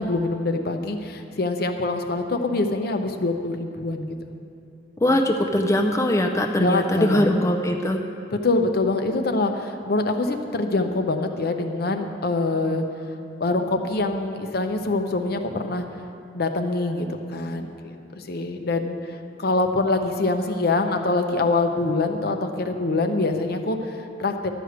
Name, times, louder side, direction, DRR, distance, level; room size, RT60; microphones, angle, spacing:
voice 1, 0.0-4.2 6.6-7.3 8.3-12.8 13.4-15.8 16.3-24.5, left 2 dB, 60° left, 6 dB, 0.7 m, -25 dB
voice 2, 5.0-8.0, left 1 dB, 15° left, 3 dB, 0.4 m, -21 dB
12.0 x 5.0 x 8.0 m, 2.5 s
head